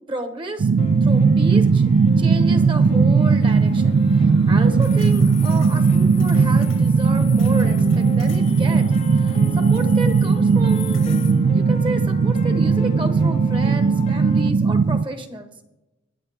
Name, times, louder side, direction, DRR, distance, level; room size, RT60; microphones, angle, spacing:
voice 1, 0.1-0.7 1.0-1.9 2.2-11.1 11.5-15.5, right 2 dB, 25° right, 8 dB, 1.1 m, -31 dB
sound 1, 0.6-15.0, right 5 dB, 55° right, 0.4 m, -17 dB
Piano, 0.8-14.5, left 2 dB, 35° left, 0.6 m, -37 dB
sound 2, 3.4-11.3, left 9 dB, 85° left, 2.1 m, -41 dB
20.5 x 7.9 x 3.5 m, 0.98 s
head